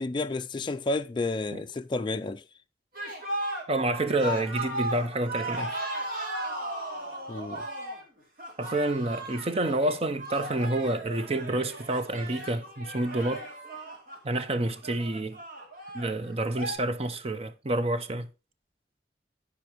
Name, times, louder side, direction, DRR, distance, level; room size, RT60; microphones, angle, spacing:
voice 1, 0.0-2.4 7.3-7.7, left 2 dB, 25° left, 0.4 m, -31 dB
sound 1, 2.9-16.8, right 1 dB, 55° right, 2.8 m, -36 dB
voice 2, 3.7-5.8 8.6-13.5 14.2-15.4 15.9-18.3, right 2 dB, 35° right, 0.7 m, -28 dB
14.5 x 5.0 x 3.0 m
head